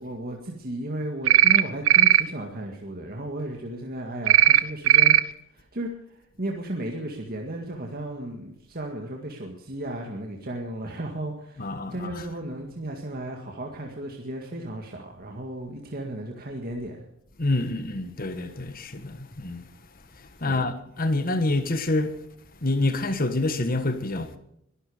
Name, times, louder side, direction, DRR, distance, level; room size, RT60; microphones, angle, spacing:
voice 1, 0.0-5.2 5.5-17.1 20.5-20.6, right 1 dB, 45° right, 2.0 m, -34 dB
sound 1, 1.3-1.6 1.9-2.2 4.3-4.6 4.9-5.2, right 12 dB, 80° right, 0.8 m, -16 dB
voice 2, 11.6-12.3 17.4-19.7 20.1-22.2 22.6-24.4, left 2 dB, 45° left, 1.6 m, -27 dB
22.0 x 12.5 x 5.1 m
head